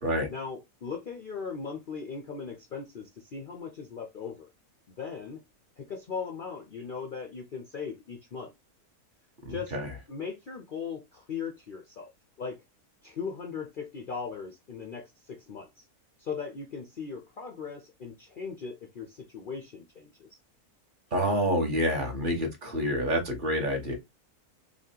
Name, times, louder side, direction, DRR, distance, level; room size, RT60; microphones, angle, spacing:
voice 1, 0.3-4.5 5.0-5.4 5.8-8.5 9.5-9.8 10.1-12.1 12.4-12.6 13.0-15.9 16.2-20.4, left 5 dB, 70° left, 0.5 m, -38 dB
voice 2, 9.5-9.9 21.1-24.0, equal, 40° right, 1.0 m, -28 dB
4.1 x 2.8 x 2.8 m
omnidirectional pair, 1.6 m